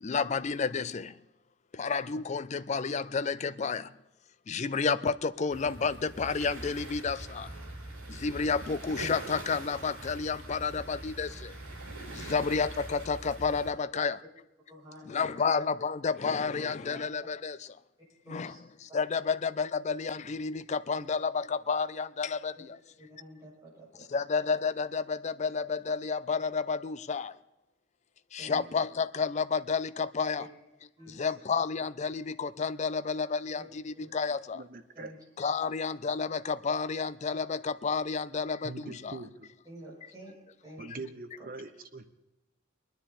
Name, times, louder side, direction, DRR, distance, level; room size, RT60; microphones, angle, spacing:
voice 1, 0.0-1.1 1.7-3.9 4.5-7.5 8.1-11.5 12.1-14.2 15.1-17.6 18.3-18.5 18.8-22.8 24.1-27.4 28.3-30.5 31.1-34.6 35.4-39.1, left 5 dB, 35° left, 0.4 m, -31 dB
sound 1, 5.5-13.7, right 2 dB, 85° right, 5.4 m, -43 dB
voice 2, 14.7-15.4 16.9-17.0 18.2-18.6 18.9-19.3 20.9-21.0 22.5-22.7 23.0-24.2 28.4-28.6 30.4-30.5 31.0-31.3 33.6-33.7 33.9-34.1 34.9-35.1 35.6-35.7 39.6-40.3 40.6-40.8 41.4-41.5, equal, 20° right, 6.4 m, -49 dB
voice 3, 34.5-35.1 38.6-39.5 40.8-42.1, right 3 dB, 45° right, 0.9 m, -43 dB
22.5 x 10.0 x 4.3 m
head